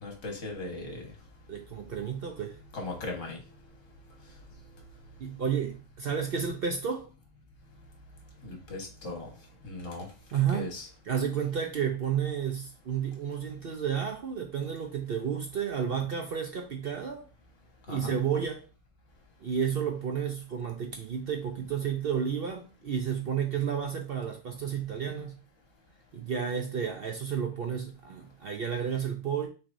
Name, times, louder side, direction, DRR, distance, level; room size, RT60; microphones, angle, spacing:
voice 1, 0.0-1.0 2.7-3.4 8.4-9.3 9.6-10.1 10.5-10.9 17.9-18.1, left 2 dB, 65° left, 2 dB, 1.6 m, -38 dB
voice 2, 1.5-2.6 5.2-7.0 10.3-10.7 11.1-17.2 17.9-18.6 19.4-25.4 26.1-29.5, right 7 dB, 55° right, 3 dB, 0.7 m, -31 dB
5.9 x 3.3 x 2.6 m, 0.35 s
omnidirectional pair, 1.4 m